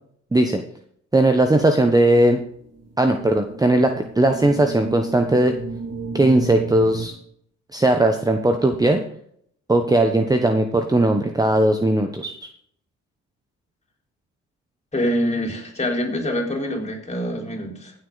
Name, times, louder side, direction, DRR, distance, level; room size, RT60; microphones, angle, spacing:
voice 1, 0.3-0.6 1.1-2.4 3.0-5.5 6.1-7.1 7.7-9.0 9.7-12.3, right 1 dB, 10° right, 5 dB, 1.0 m, -18 dB
sound 1, 2.1-7.1, right 3 dB, 55° right, 2.8 m, -34 dB
voice 2, 14.9-17.9, equal, 20° left, 1 dB, 4.4 m, -25 dB
16.0 x 8.1 x 4.0 m, 0.65 s
cardioid pair, 90°, 30 cm